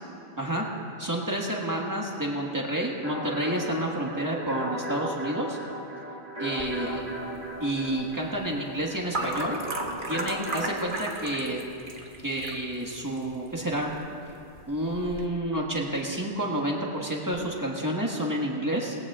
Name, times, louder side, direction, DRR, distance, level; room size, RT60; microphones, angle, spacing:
voice 1, 1.0-5.6 6.4-7.0 7.6-9.6 10.1-11.6 12.2-13.9 14.7-18.9, right 1 dB, 15° right, -2 dB, 1.6 m, -29 dB
sound 1, 3.0-10.8, equal, 30° left, 2.7 m, -36 dB
sound 2, 6.6-15.3, right 2 dB, 50° right, 1.3 m, -38 dB
20.5 x 16.0 x 2.5 m, 2.9 s
omnidirectional pair, 1.2 m